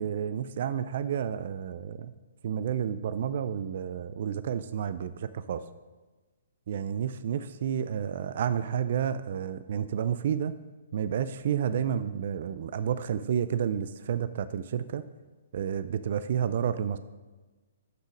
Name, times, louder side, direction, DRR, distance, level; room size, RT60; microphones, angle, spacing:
voice 1, 0.0-2.1 2.4-5.6 6.7-10.5 10.9-15.0 15.5-17.0, right 8 dB, 55° right, 13 dB, 0.3 m, -30 dB
6.0 x 5.7 x 5.0 m, 1.2 s
hypercardioid pair, 140°, 0 cm